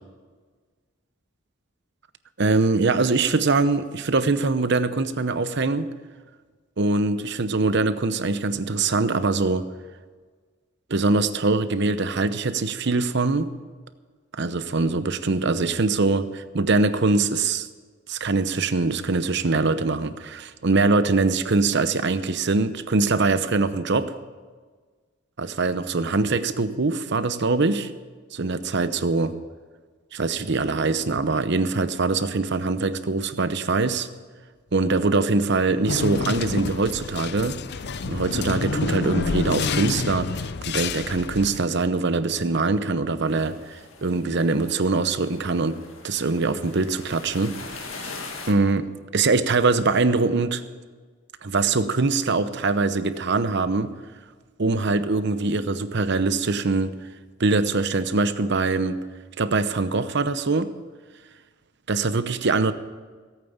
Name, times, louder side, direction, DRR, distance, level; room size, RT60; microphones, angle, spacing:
voice 1, 2.4-5.9 6.8-9.6 10.9-13.5 14.4-17.7 18.1-24.2 25.4-27.9 28.3-29.3 30.1-34.1 34.7-37.6 38.1-40.3 40.7-45.8 46.0-48.2 48.5-50.6 51.4-53.9 54.6-56.9 57.4-59.0 59.4-60.7 61.9-62.7, right 3 dB, 60° right, 12 dB, 0.8 m, -23 dB
sound 1, 35.9-41.6, left 4 dB, 55° left, 0.5 m, -28 dB
sound 2, 43.3-48.5, left 4 dB, 85° left, 2.0 m, -41 dB
17.5 x 9.0 x 7.2 m, 1.5 s
head